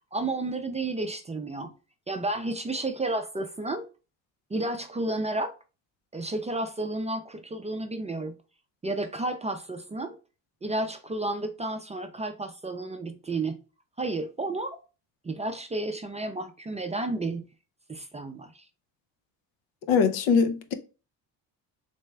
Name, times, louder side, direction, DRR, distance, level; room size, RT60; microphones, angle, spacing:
voice 1, 0.1-1.7 2.1-3.9 4.5-5.5 6.1-8.4 8.8-10.2 10.6-13.6 14.0-14.8 15.2-17.5 17.9-18.6, right 2 dB, 15° right, 0.4 m, -31 dB
voice 2, 19.9-20.7, left 6 dB, 80° left, 0.7 m, -22 dB
3.3 x 3.2 x 3.3 m
supercardioid pair, 80°, 44 cm